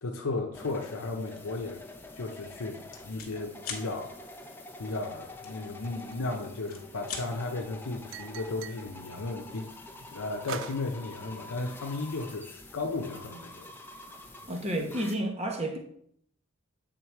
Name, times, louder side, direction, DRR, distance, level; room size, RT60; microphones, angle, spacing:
voice 1, 0.0-1.8 2.2-4.1 4.8-9.7 10.1-13.6, left 3 dB, 80° left, 2 dB, 0.7 m, -35 dB
sound 1, 0.5-15.1, left 2 dB, 10° left, 0.5 m, -47 dB
sound 2, 1.3-1.5 2.0-2.2 2.4-3.3 3.6-3.9 5.4-6.2 6.6-7.3, left 5 dB, 45° left, 1.1 m, -40 dB
sound 3, 5.8-7.0 8.1-8.9 10.5-10.9, right 7 dB, 60° right, 0.4 m, -42 dB
voice 2, 14.5-15.8, right 1 dB, 30° right, 3 dB, 1.0 m, -31 dB
7.9 x 3.9 x 4.6 m, 0.69 s
head